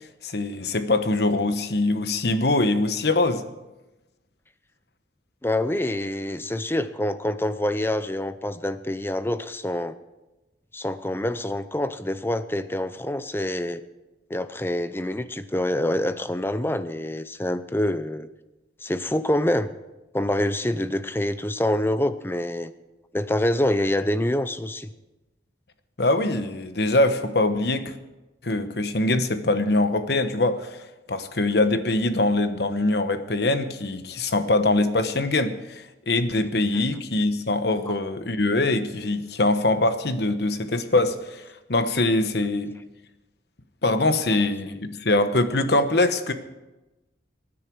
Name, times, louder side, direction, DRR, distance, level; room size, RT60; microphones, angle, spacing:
voice 1, 0.2-3.4 26.0-27.9 28.4-30.8 31.1-41.4 41.7-42.7 43.8-46.3, left 2 dB, 60° left, 1.1 m, -23 dB
voice 2, 5.4-10.0 10.7-13.8 14.3-18.3 18.8-19.7 20.1-22.7 23.1-24.9, left 1 dB, 10° left, 0.6 m, -26 dB
23.0 x 9.9 x 4.7 m
head